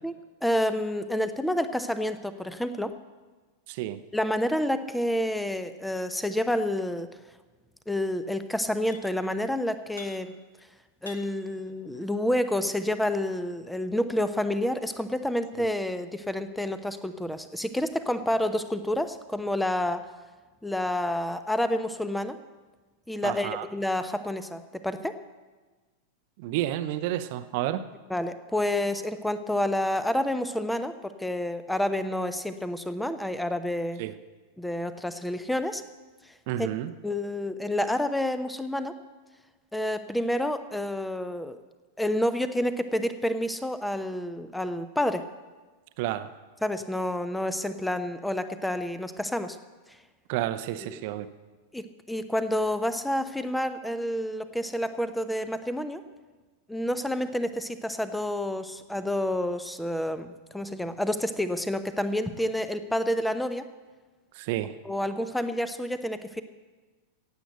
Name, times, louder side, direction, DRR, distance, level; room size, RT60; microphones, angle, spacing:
voice 1, 0.4-2.9 4.1-7.1 7.9-10.3 11.0-20.1 20.6-22.4 23.1-25.2 28.1-34.0 34.6-35.8 36.6-36.7 37.0-38.9 39.7-41.6 42.0-45.3 46.6-49.6 50.9-51.0 51.7-56.0 56.7-63.7 64.8-66.4, left 1 dB, 5° left, 11 dB, 0.9 m, -29 dB
voice 2, 3.7-4.0 15.6-15.7 23.2-23.7 26.4-27.8 34.0-34.1 36.5-36.9 46.0-46.3 50.3-51.3 64.3-64.8, right 13 dB, 50° right, 12 dB, 0.8 m, -30 dB
sound 1, 8.9-9.4 9.7-10.6 10.9-12.4 13.0-14.2, left 4 dB, 80° left, 1.8 m, -50 dB
16.5 x 8.3 x 8.0 m, 1.3 s
figure-of-eight pair, 90°, 0 cm